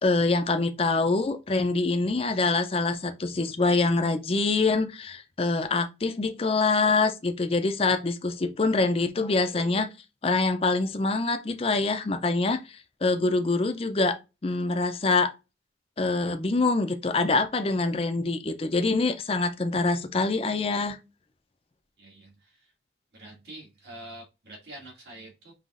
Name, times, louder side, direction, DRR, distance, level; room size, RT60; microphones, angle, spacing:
voice 1, 0.0-9.9 10.2-15.3 16.0-21.0, left 3 dB, 30° left, 0.4 m, -25 dB
voice 2, 22.0-22.7 23.1-25.5, right 1 dB, 65° right, 1.9 m, -46 dB
5.5 x 2.9 x 2.4 m
head